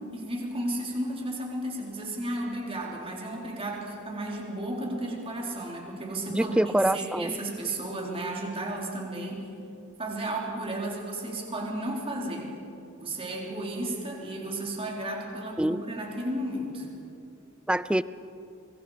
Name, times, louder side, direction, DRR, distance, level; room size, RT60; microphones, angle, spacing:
voice 1, 0.1-6.6 6.9-9.5 10.0-12.5 13.0-16.9, right 1 dB, 25° right, -2 dB, 3.9 m, -33 dB
voice 2, 6.3-7.4 15.6-15.8 17.7-18.0, right 1 dB, 5° right, 16 dB, 0.4 m, -25 dB
24.5 x 23.5 x 5.1 m, 2.7 s
head